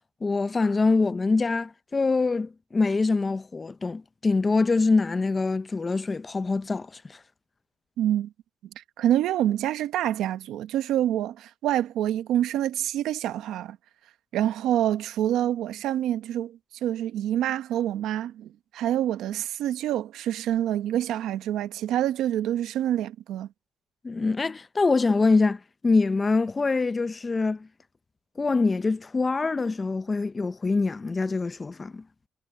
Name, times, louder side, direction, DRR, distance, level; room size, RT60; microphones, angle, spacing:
voice 1, 0.2-7.2 24.0-27.7 28.4-32.0, left 3 dB, 30° left, 0.6 m, -24 dB
voice 2, 8.0-8.3 8.8-13.8 14.3-23.5, right 12 dB, 85° right, 1.0 m, -27 dB
cardioid pair, 90°, 0 cm